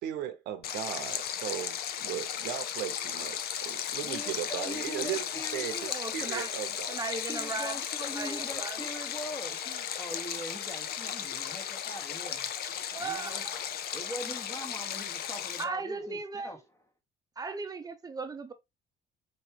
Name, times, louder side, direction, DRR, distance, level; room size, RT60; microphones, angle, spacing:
voice 1, 0.0-7.1, right 11 dB, 80° right, 0.8 m, -37 dB
Stream, 0.6-15.6, left 9 dB, 65° left, 0.6 m, -35 dB
voice 2, 3.9-6.0 7.3-9.7 10.0-12.5 13.0-13.5 13.9-16.6, equal, 15° left, 1.2 m, -42 dB
voice 3, 5.9-6.5 6.9-7.8 8.1-8.9 9.7-9.8 12.9-13.6 15.6-16.5 17.4-18.5, right 4 dB, 20° right, 0.7 m, -37 dB
4.6 x 3.0 x 3.0 m
cardioid pair, 110°, 17 cm